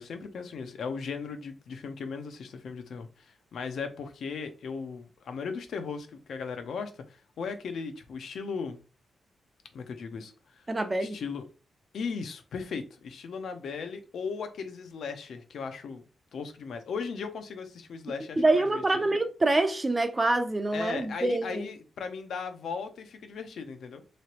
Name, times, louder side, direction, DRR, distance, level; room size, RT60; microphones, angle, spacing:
voice 1, 0.0-8.8 9.7-10.7 11.0-11.4 11.9-16.0 16.3-19.1 20.7-24.2, left 5 dB, 70° left, 0.5 m, -37 dB
voice 2, 10.7-11.2 18.4-21.7, right 2 dB, 20° right, 0.5 m, -26 dB
3.1 x 2.9 x 2.8 m
wide cardioid pair, 140°, 0 cm